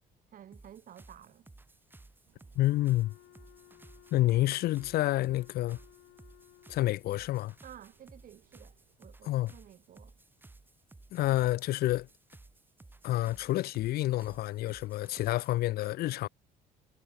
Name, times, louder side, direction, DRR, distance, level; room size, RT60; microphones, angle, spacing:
voice 1, 0.3-1.5 7.6-10.1, right 10 dB, 55° right, 2.5 m, -53 dB
sound 1, 0.5-15.6, right 2 dB, 10° right, 1.5 m, -56 dB
sound 2, 2.2-9.0, right 17 dB, 80° right, 3.8 m, -71 dB
Wind instrument woodwind instrument, 2.5-7.2, left 17 dB, 80° left, 5.5 m, -59 dB
voice 2, 2.6-3.1 4.1-5.8 6.7-7.5 9.2-9.5 11.1-12.1 13.0-16.3, left 16 dB, 65° left, 0.5 m, -29 dB
cardioid pair, 110°, 17 cm